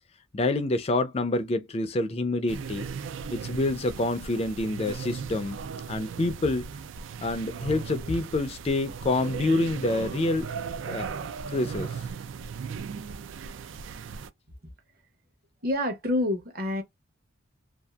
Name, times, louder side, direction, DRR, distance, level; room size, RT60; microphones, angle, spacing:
voice 1, 0.3-2.9 3.3-5.6 5.9-6.7 7.2-10.5 10.9-11.1 11.5-12.0, left 2 dB, 30° left, 0.4 m, -27 dB
sound 1, 2.5-14.3, right 6 dB, 70° right, 0.4 m, -37 dB
voice 2, 15.6-16.8, left 1 dB, 45° right, 0.9 m, -27 dB
2.7 x 2.4 x 2.2 m
head